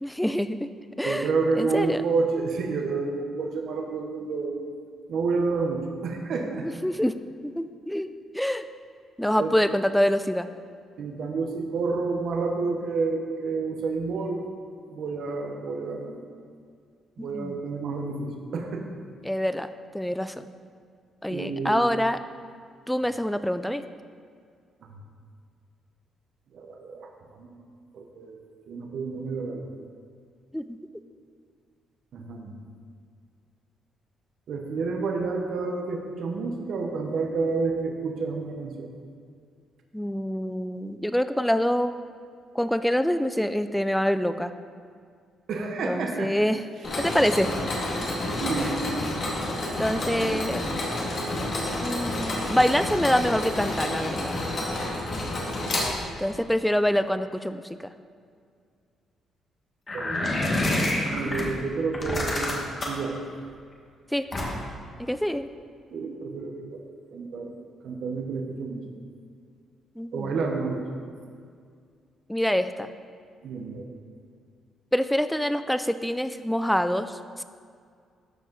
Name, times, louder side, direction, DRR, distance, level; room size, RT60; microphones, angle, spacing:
voice 1, 0.0-0.7 1.0-1.3 1.6-2.0 6.6-7.2 7.4-8.6 9.2-10.5 17.2-17.6 19.2-19.7 19.9-20.5 21.2-22.2 22.9-23.8 30.5-30.8 39.9-42.0 42.5-44.5 45.8-46.6 47.0-47.5 48.6-48.7 49.8-50.6 51.8-54.4 56.2-57.9 61.1-61.4 64.1-64.3 65.0-65.5 70.0-70.4 72.3-72.9 74.9-77.4, equal, 5° left, 11 dB, 0.4 m, -26 dB
voice 2, 1.0-4.6 5.1-6.7 9.4-9.5 11.0-14.5 14.9-16.2 17.2-18.8 21.3-21.9 24.9-25.0 26.5-27.5 27.9-28.4 28.7-29.7 32.1-32.5 34.5-38.9 45.5-46.3 48.4-48.8 50.2-50.4 56.3-56.4 59.9-60.6 61.1-63.2 65.9-66.8 67.1-67.5 67.8-68.9 70.1-70.9 73.4-73.9, right 4 dB, 65° right, 2 dB, 1.0 m, -29 dB
Mechanisms, 46.8-56.4, left 1 dB, 50° left, 1.9 m, -29 dB
sound 1, 59.9-61.4 61.9-63.1 64.3-64.8, left 1 dB, 30° left, 1.6 m, -27 dB
13.0 x 4.8 x 3.9 m, 2.2 s
cardioid pair, 90°, 0 cm